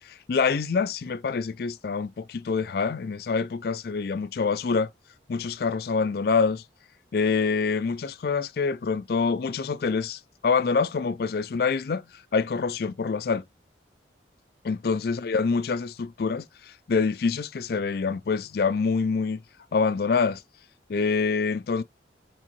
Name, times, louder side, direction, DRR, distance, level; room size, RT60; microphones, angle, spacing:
voice 1, 0.3-4.9 5.3-6.6 7.1-12.0 12.3-13.4 14.6-16.5 16.9-19.4 19.7-20.4 20.9-21.8, left 5 dB, 55° left, 0.4 m, -26 dB
4.5 x 3.7 x 3.0 m
head